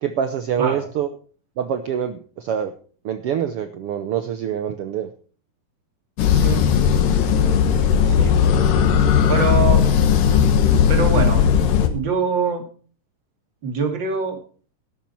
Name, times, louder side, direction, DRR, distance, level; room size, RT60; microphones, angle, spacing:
voice 1, 0.0-1.1 1.6-2.7 3.0-5.1, right 8 dB, 85° right, 9 dB, 1.3 m, -25 dB
sound 1, 6.2-11.9, left 7 dB, 90° left, 3.0 m, -17 dB
voice 2, 6.3-6.6 8.1-8.4 9.3-9.8 10.9-11.5 11.9-12.6 13.6-14.4, right 5 dB, 35° right, 4 dB, 2.8 m, -23 dB
12.5 x 11.5 x 4.5 m, 0.41 s
omnidirectional pair, 3.8 m